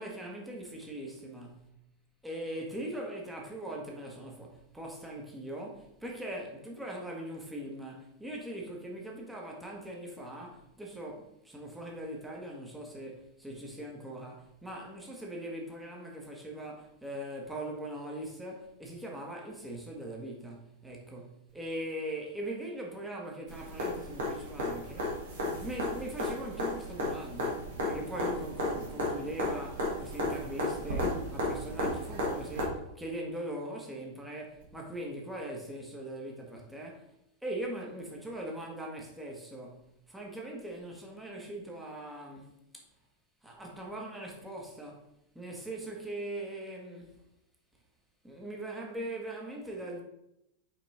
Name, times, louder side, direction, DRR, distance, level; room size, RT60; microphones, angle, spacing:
voice 1, 0.0-1.7 2.2-25.2 25.6-37.1 37.4-42.8 43.4-45.1 45.3-47.1 48.2-50.0, right 1 dB, 5° right, 1.4 m, -41 dB
sound 1, 23.5-32.6 34.6-34.7, left 1 dB, 60° right, 2.0 m, -34 dB
5.9 x 4.3 x 4.3 m
figure-of-eight pair, 90°, 0 cm